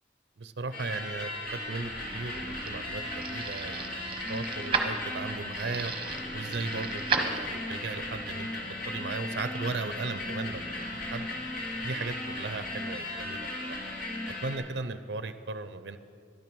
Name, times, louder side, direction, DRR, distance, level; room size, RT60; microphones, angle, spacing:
voice 1, 0.4-5.9 6.3-8.5 8.9-11.3 11.8-13.8 14.4-16.0, right 3 dB, 65° right, 11 dB, 0.5 m, -37 dB
sound 1, 0.7-14.6, left 1 dB, 50° left, 2.1 m, -36 dB
sound 2, 1.9-7.9, right 5 dB, 30° right, 1.0 m, -35 dB
11.5 x 10.5 x 6.1 m, 2.3 s
head